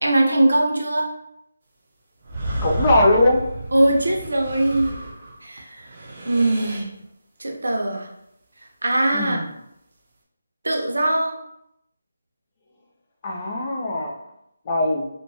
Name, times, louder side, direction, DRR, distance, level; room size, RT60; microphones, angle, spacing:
voice 1, 0.0-1.1 3.7-5.0 5.4-6.0 6.3-6.9 7.4-8.1 8.8-9.5 10.6-11.3, right 1 dB, 85° right, 1 dB, 0.6 m, -21 dB
sound 1, 2.2-5.4 5.8-7.0, right 1 dB, 40° right, 0.5 m, -31 dB
voice 2, 2.6-3.4 9.1-9.4 13.2-14.2 14.7-15.1, left 1 dB, 25° left, 0 dB, 0.4 m, -20 dB
2.9 x 2.2 x 2.7 m, 0.79 s
figure-of-eight pair, 165°, 0 cm